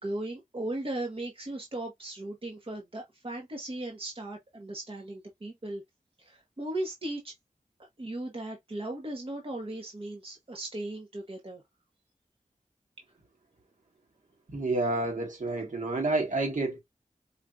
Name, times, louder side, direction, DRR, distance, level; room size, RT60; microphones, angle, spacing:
voice 1, 0.0-5.8 6.2-7.3 7.8-11.6, right 1 dB, 45° right, 1.2 m, -37 dB
voice 2, 14.5-16.8, right 2 dB, 70° right, 1.7 m, -29 dB
5.0 x 2.8 x 2.4 m
wide cardioid pair, 75°, 13 cm